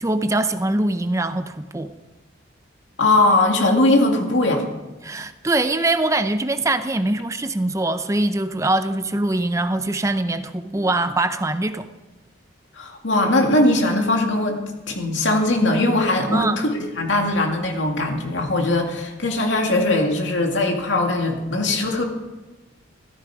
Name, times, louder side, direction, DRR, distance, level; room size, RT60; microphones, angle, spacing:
voice 1, 0.0-1.9 5.0-11.9 16.3-16.6, right 2 dB, 15° right, 10 dB, 0.5 m, -23 dB
voice 2, 3.0-4.6 12.8-14.6 14.9-22.0, left 2 dB, 75° left, 2 dB, 2.3 m, -20 dB
14.5 x 13.5 x 4.8 m, 1.2 s
head